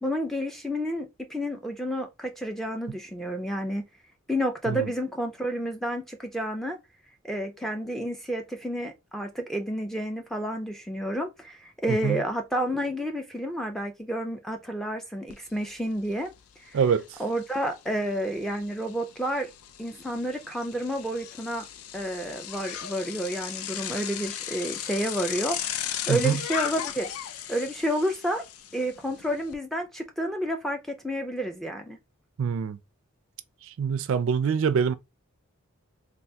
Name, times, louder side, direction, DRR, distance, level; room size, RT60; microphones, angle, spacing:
voice 1, 0.0-3.8 4.3-6.8 7.3-16.3 16.6-16.8 17.2-19.5 19.8-21.7 21.9-25.6 25.9-27.1 27.5-28.4 28.7-32.0, equal, ahead, 0.4 m, -30 dB
Bicycle, 15.3-15.4 15.8-29.5, left 10 dB, 85° left, 0.4 m, -37 dB
voice 2, 16.7-17.1 26.1-26.4 32.4-32.8 33.7-34.9, right 6 dB, 65° right, 0.3 m, -25 dB
3.4 x 2.4 x 2.6 m
head